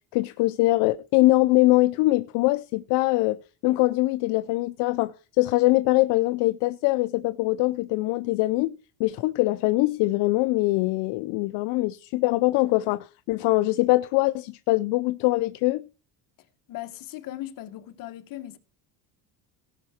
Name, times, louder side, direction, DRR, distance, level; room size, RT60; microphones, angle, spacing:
voice 1, 0.1-15.9, left 20 dB, 70° left, 0.6 m, -23 dB
voice 2, 16.7-18.6, left 14 dB, 50° left, 1.3 m, -38 dB
17.5 x 5.8 x 4.2 m
cardioid pair, 160°, 43 cm